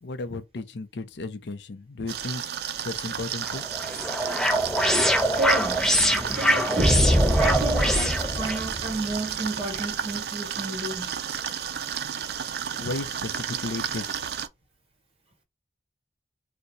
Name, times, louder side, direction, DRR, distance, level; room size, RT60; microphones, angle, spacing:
voice 1, 0.0-2.4 2.8-3.6 12.6-14.3, left 3 dB, 85° left, 0.5 m, -34 dB
sound 1, 2.1-14.5, right 8 dB, 65° right, 0.4 m, -32 dB
sound 2, 3.4-8.6, equal, 5° left, 0.3 m, -24 dB
voice 2, 5.4-5.8 6.0-7.0 7.4-11.1, right 2 dB, 35° right, 1.3 m, -32 dB
sound 3, 6.8-9.4, equal, 15° right, 0.7 m, -24 dB
2.8 x 2.2 x 3.7 m
head